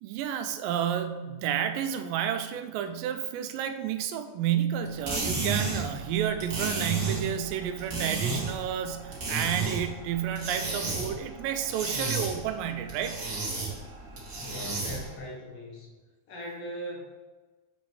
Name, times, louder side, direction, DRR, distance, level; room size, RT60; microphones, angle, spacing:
voice 1, 0.0-13.2, right 9 dB, 85° right, 8 dB, 2.2 m, -31 dB
sound 1, 4.8-15.2, right 3 dB, 55° right, 0.7 m, -33 dB
voice 2, 14.3-15.9 16.3-17.1, equal, 80° left, -2 dB, 2.8 m, -40 dB
6.9 x 5.2 x 3.1 m, 1.3 s
omnidirectional pair, 3.9 m